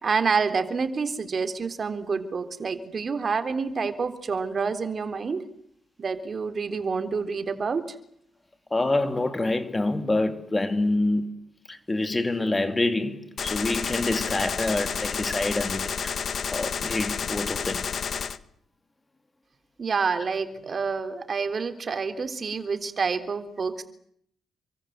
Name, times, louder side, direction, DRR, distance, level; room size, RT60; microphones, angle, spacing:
voice 1, 0.0-5.5 6.0-8.0 19.8-23.8, right 5 dB, 40° right, 3.5 m, -28 dB
voice 2, 8.7-11.3 11.7-16.2 16.5-17.9, left 2 dB, 20° left, 2.7 m, -26 dB
Gunshot gunfire, 13.4-18.4, left 6 dB, 50° left, 1.6 m, -30 dB
29.0 x 24.0 x 8.1 m
cardioid pair, 90°, 0 cm